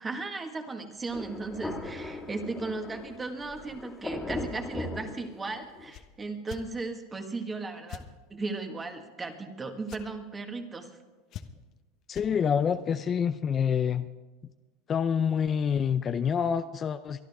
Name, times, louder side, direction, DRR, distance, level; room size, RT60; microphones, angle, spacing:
voice 1, 0.0-8.0 8.3-10.9, right 3 dB, 15° right, 6 dB, 1.8 m, -36 dB
Thunder, 1.1-5.9, left 2 dB, 15° left, 2.1 m, -38 dB
sound 1, 5.9-6.1 6.5-6.6 7.9-8.1 9.9-10.0 11.3-11.7 12.1-12.3, left 11 dB, 45° left, 1.1 m, -42 dB
voice 2, 12.1-14.1 14.9-17.2, left 7 dB, 30° left, 10 dB, 0.5 m, -27 dB
23.0 x 11.5 x 3.6 m, 1.3 s
supercardioid pair, 120°, 0 cm